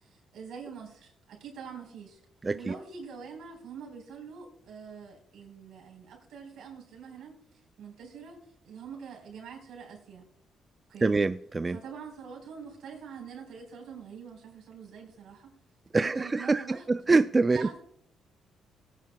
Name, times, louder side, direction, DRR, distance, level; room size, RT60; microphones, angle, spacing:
voice 1, 0.0-2.2 2.5-8.4 8.6-10.3 10.9-11.1 11.7-15.5 16.0-16.9 17.5-17.8, right 6 dB, 75° right, 1 dB, 4.1 m, -45 dB
voice 2, 2.4-2.7 11.0-11.8 15.9-16.6 16.9-17.7, right 3 dB, 25° right, 12 dB, 0.3 m, -25 dB
19.5 x 9.3 x 2.2 m, 0.70 s
cardioid pair, 90°, 0 cm